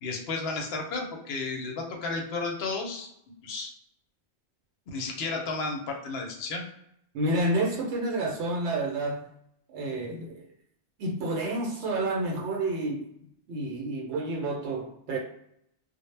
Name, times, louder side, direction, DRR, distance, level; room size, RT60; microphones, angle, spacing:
voice 1, 0.0-3.1 3.4-3.7 4.9-6.6, left 3 dB, 70° left, 0.8 m, -33 dB
voice 2, 7.1-9.3 9.7-10.4 11.0-13.1 13.5-15.2, right 2 dB, 75° right, 0.8 m, -29 dB
2.1 x 2.0 x 3.1 m
omnidirectional pair, 1.2 m